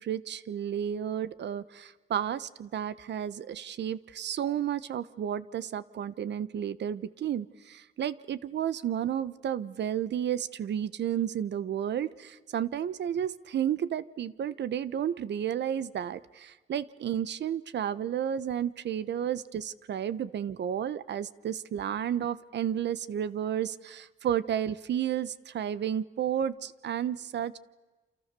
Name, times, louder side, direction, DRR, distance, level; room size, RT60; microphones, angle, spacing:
voice 1, 0.0-27.6, right 9 dB, 60° right, 16 dB, 1.1 m, -32 dB
28.5 x 28.0 x 6.9 m, 1.2 s
cardioid pair, 90°, 20 cm